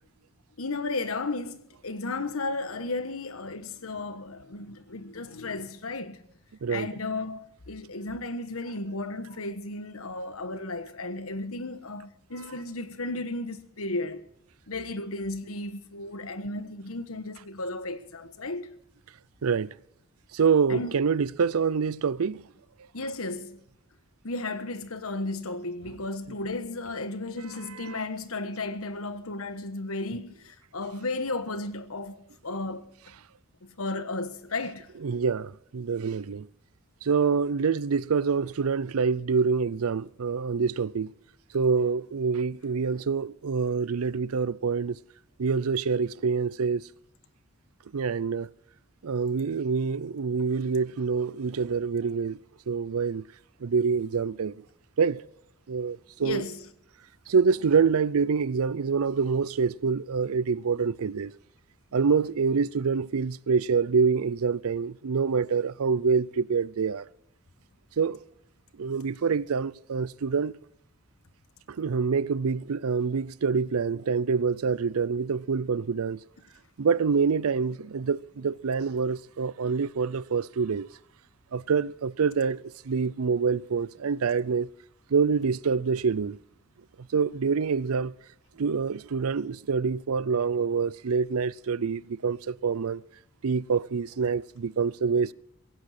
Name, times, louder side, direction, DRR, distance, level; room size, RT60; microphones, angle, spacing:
voice 1, 0.6-6.2 6.7-14.3 14.7-18.7 20.7-20.9 22.9-23.6 24.2-32.2 32.4-32.9 33.6-34.9 56.2-56.7, left 2 dB, 80° left, 1.3 m, -34 dB
voice 2, 19.4-19.7 20.3-22.4 27.7-28.0 35.0-36.5 37.0-41.1 41.5-45.0 45.4-46.9 47.9-48.5 49.0-52.4 52.7-53.2 53.6-54.5 55.0-55.3 55.7-56.4 57.3-61.3 61.9-67.1 68.0-68.2 68.8-70.5 71.7-76.2 76.8-80.9 81.5-84.7 85.1-86.4 87.1-88.1 88.6-93.0 93.4-95.3, right 5 dB, 85° right, 0.5 m, -26 dB
17.0 x 16.0 x 4.3 m
head